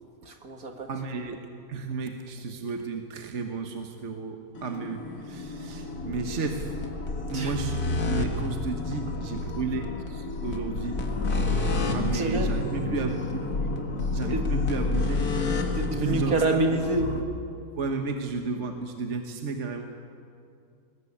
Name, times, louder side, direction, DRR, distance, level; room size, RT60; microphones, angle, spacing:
voice 1, 0.3-0.9 7.3-7.6 12.1-12.5 14.3-14.5 15.8-17.1, right 2 dB, 75° right, 4 dB, 2.4 m, -27 dB
voice 2, 0.9-1.4 1.7-6.7 7.3-11.0 11.9-13.5 14.1-15.3 16.0-16.6 17.8-19.8, right 4 dB, 55° right, 4 dB, 1.5 m, -33 dB
sound 1, 4.5-17.2, left 3 dB, 90° left, 2.3 m, -30 dB
21.5 x 19.5 x 8.6 m, 2.5 s
omnidirectional pair, 1.6 m